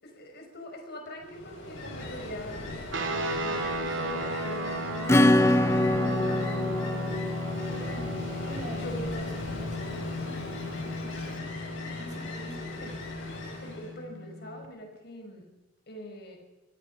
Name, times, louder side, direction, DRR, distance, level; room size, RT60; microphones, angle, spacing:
voice 1, 0.0-5.6 5.9-7.0 7.7-8.0 8.7-9.2 10.2-10.5 12.8-13.1 13.6-15.5 15.9-16.4, equal, 55° left, 3 dB, 5.4 m, -43 dB
Ocean, 1.2-14.0, left 2 dB, 75° left, 6.7 m, -39 dB
sound 1, 2.9-14.7, equal, 70° right, 3.1 m, -35 dB
Acoustic guitar / Strum, 5.1-9.4, left 1 dB, 15° left, 0.6 m, -25 dB
voice 2, 7.9-11.5 11.8-12.8, right 1 dB, 40° right, 3 dB, 4.9 m, -47 dB
26.5 x 17.5 x 5.6 m, 1.0 s
head